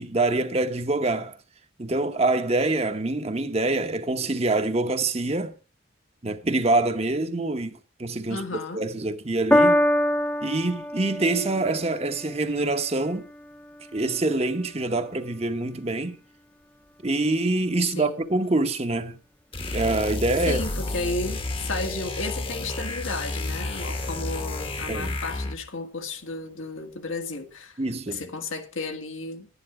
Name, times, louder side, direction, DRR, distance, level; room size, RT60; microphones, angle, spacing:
voice 1, 0.0-1.4 1.8-5.5 6.2-8.4 8.7-9.8 10.4-13.3 13.9-16.2 17.0-19.2 19.7-20.6 24.9-25.2 27.8-28.3, right 2 dB, 30° right, 0.9 m, -25 dB
voice 2, 8.3-8.8 18.0-18.2 20.5-27.8 28.1-29.5, left 3 dB, 85° left, 2.0 m, -33 dB
Piano, 9.5-16.1 16.9-17.0, equal, 5° left, 0.7 m, -27 dB
sound 1, 19.5-25.7, left 2 dB, 25° left, 1.0 m, -31 dB
11.0 x 10.0 x 4.8 m
head